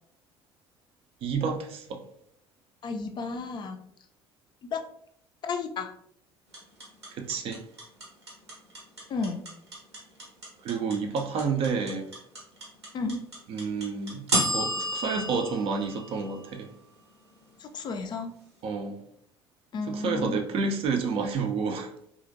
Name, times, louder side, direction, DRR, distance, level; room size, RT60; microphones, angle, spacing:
voice 1, 1.2-2.0 7.1-7.6 10.6-12.1 13.5-14.2 14.5-16.7 18.6-19.0 19.9-21.9, right 5 dB, 45° right, 0.4 m, -29 dB
voice 2, 2.8-3.8 4.6-4.8 5.4-5.9 9.1-9.4 12.9-13.2 17.6-18.3 19.7-20.4, left 4 dB, 35° left, 0.3 m, -32 dB
sound 1, 6.5-16.7, equal, 85° right, 0.8 m, -31 dB
2.8 x 2.5 x 2.6 m
figure-of-eight pair, 55°, 13 cm